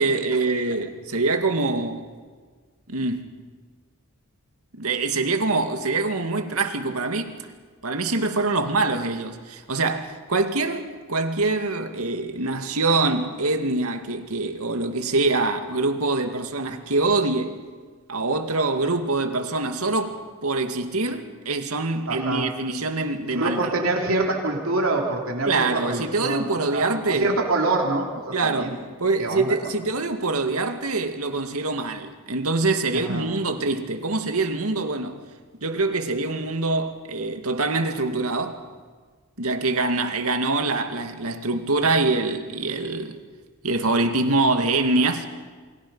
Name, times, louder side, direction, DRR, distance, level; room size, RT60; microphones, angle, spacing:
voice 1, 0.0-2.1 2.9-3.3 4.7-7.3 7.8-17.6 18.1-23.7 25.5-27.3 28.3-28.7 29.0-35.2 35.6-38.6 39.4-43.2 43.6-45.3, right 3 dB, 85° right, 2.3 m, -24 dB
voice 2, 22.1-22.5 23.3-28.8 29.2-29.8 32.9-33.3, right 2 dB, 65° right, 3.4 m, -26 dB
28.5 x 24.0 x 5.6 m
head